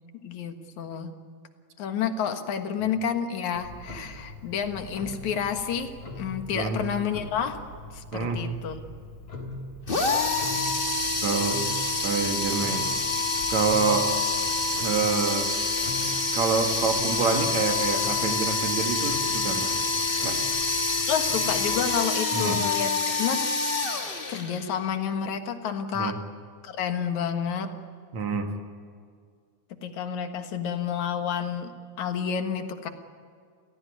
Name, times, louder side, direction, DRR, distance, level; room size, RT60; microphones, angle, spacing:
voice 1, 0.2-1.2 1.8-7.6 7.9-8.8 21.1-23.5 24.3-26.2 26.6-27.7 29.8-32.9, left 7 dB, 70° left, 7 dB, 2.8 m, -30 dB
Clock, 3.6-22.0, left 1 dB, 50° left, 4.5 m, -42 dB
voice 2, 8.1-8.4 11.2-12.9 13.5-14.1 14.8-15.5 15.9-19.7 20.2-20.4 22.3-22.6 25.9-26.1 28.1-28.5, right 5 dB, 65° right, 5 dB, 3.0 m, -27 dB
sound 1, 9.9-24.8, left 3 dB, 25° left, 1.1 m, -27 dB
30.0 x 16.5 x 9.7 m, 2.2 s
omnidirectional pair, 3.6 m